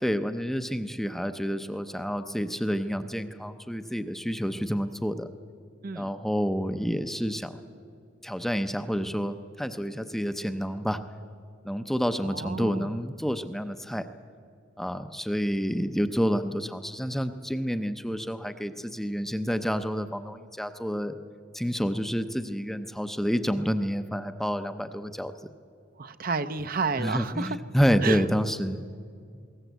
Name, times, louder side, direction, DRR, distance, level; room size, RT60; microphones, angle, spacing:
voice 1, 0.0-5.3 5.9-7.6 8.2-11.0 11.6-14.1 14.8-21.1 21.5-25.3 27.0-28.9, equal, ahead, 9 dB, 0.6 m, -29 dB
voice 2, 12.2-12.9 26.0-27.6 28.0-28.2, right 4 dB, 45° right, 11 dB, 0.7 m, -31 dB
21.0 x 18.0 x 8.1 m, 2.2 s
head